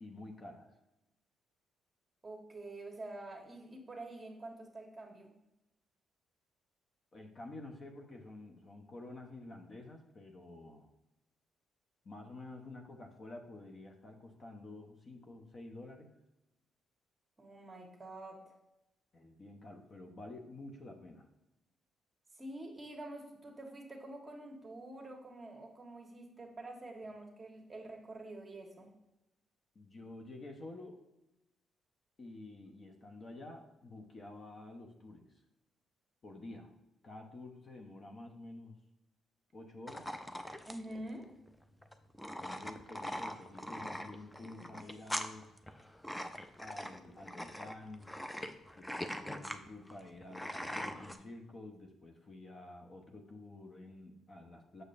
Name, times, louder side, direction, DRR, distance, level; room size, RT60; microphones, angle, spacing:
voice 1, 0.0-0.7 7.1-10.9 12.0-16.1 19.1-21.3 29.7-31.0 32.2-35.3 36.2-36.7 37.0-38.8 39.5-40.1 42.4-45.5 46.6-48.1 48.8-54.8, left 2 dB, 40° left, 3 dB, 0.9 m, -50 dB
voice 2, 2.2-5.3 17.4-18.4 22.4-28.9 40.7-41.3, right 1 dB, 25° right, 1 dB, 1.3 m, -47 dB
sound 1, 39.9-51.2, equal, 10° left, 0.5 m, -42 dB
6.5 x 6.4 x 2.6 m, 0.94 s
cardioid pair, 90°, 0 cm